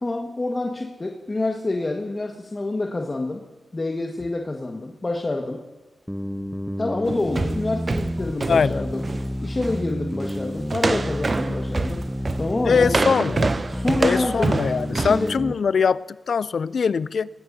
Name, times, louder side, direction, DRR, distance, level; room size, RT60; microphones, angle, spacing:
voice 1, 0.0-3.4 3.7-5.6 6.8-9.0 9.4-13.1 13.7-14.5 15.0-15.3, left 2 dB, 35° left, 2 dB, 1.6 m, -27 dB
sound 1, 6.1-15.6, equal, ahead, 0.9 m, -30 dB
sound 2, 7.1-9.3 9.6-9.8 10.2-10.4 10.7-15.3, right 3 dB, 45° right, 0.6 m, -26 dB
voice 2, 8.5-8.9 12.7-13.5 14.0-17.3, left 6 dB, 70° left, 18 dB, 0.4 m, -22 dB
20.0 x 19.0 x 2.8 m, 1.2 s
cardioid pair, 45°, 0 cm